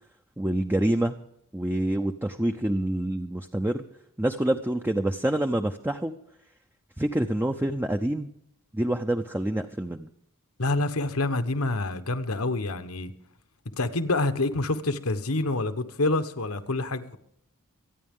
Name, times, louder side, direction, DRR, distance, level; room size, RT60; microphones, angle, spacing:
voice 1, 0.4-1.1 1.5-3.8 4.2-6.1 7.0-8.3 8.7-10.1, right 1 dB, 10° right, 0.6 m, -27 dB
voice 2, 10.6-13.1 13.8-17.2, left 2 dB, 75° left, 1.2 m, -27 dB
25.5 x 9.7 x 3.7 m
head